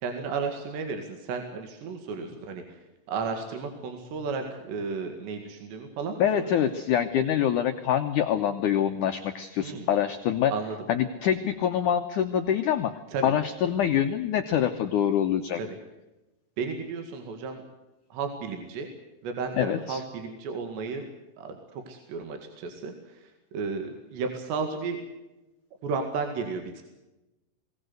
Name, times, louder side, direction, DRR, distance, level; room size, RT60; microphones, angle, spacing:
voice 1, 0.0-2.8 3.1-6.5 9.6-9.9 10.5-10.8 13.1-13.2 15.6-15.7 16.6-17.6 18.1-18.9 19.2-21.0 21.4-25.0 25.8-26.8, right 5 dB, 75° right, 5 dB, 4.2 m, -33 dB
voice 2, 6.2-10.5 10.9-12.9 13.2-15.6 19.5-20.0, left 9 dB, 90° left, 6 dB, 1.7 m, -25 dB
22.0 x 18.0 x 8.0 m, 1.0 s
omnidirectional pair, 5.1 m